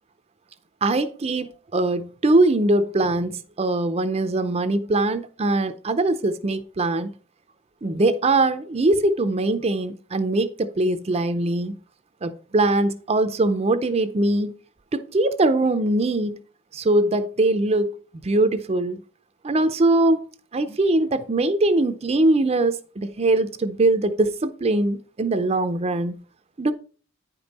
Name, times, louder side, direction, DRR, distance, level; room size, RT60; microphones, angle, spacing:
voice 1, 0.8-7.1 7.8-11.8 12.2-14.5 14.9-16.4 16.7-18.0 18.2-19.0 19.4-20.3 20.5-26.2 26.6-26.7, right 2 dB, 30° right, 0.5 m, -22 dB
9.4 x 5.3 x 4.1 m
head